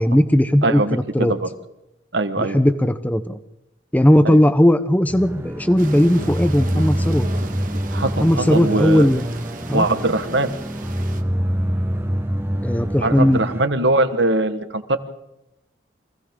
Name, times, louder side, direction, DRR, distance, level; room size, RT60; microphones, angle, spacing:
voice 1, 0.0-1.3 2.4-3.4 3.9-7.3 8.2-9.2 9.7-9.9 12.6-13.4, equal, 10° left, 12 dB, 0.6 m, -17 dB
voice 2, 0.6-1.5 2.1-2.6 4.2-4.4 7.9-9.1 9.7-10.5 13.0-15.0, right 2 dB, 70° right, 9 dB, 1.3 m, -21 dB
sound 1, 5.1-13.6, equal, 10° right, 1.0 m, -26 dB
sound 2, 5.8-11.2, right 2 dB, 45° right, 1.5 m, -36 dB
30.0 x 24.5 x 3.7 m, 0.89 s
head